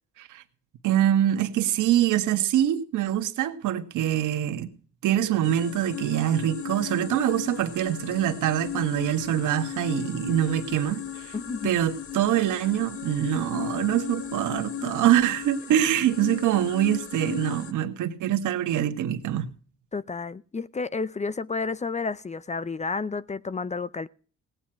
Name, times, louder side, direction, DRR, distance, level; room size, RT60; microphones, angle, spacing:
voice 1, 0.8-4.7 5.0-11.3 11.6-19.5, right 11 dB, 85° right, 1.5 m, -24 dB
sound 1, 5.4-17.7, left 10 dB, 45° left, 1.1 m, -36 dB
voice 2, 11.3-11.7 14.8-15.1 19.9-24.1, left 4 dB, 25° left, 0.6 m, -31 dB
17.5 x 9.2 x 4.6 m
cardioid pair, 90°, 30 cm